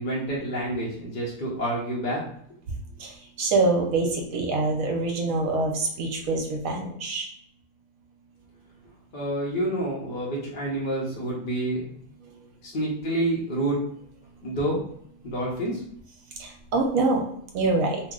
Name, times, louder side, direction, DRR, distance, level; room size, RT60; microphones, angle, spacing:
voice 1, 0.0-2.2 9.1-12.0 12.6-13.8 14.4-14.8 15.2-15.8, right 1 dB, 50° left, -5 dB, 0.6 m, -28 dB
voice 2, 3.0-7.3 16.4-17.2 17.5-18.0, right 3 dB, 70° right, 1 dB, 0.9 m, -25 dB
2.7 x 2.0 x 3.6 m, 0.66 s
omnidirectional pair, 1.6 m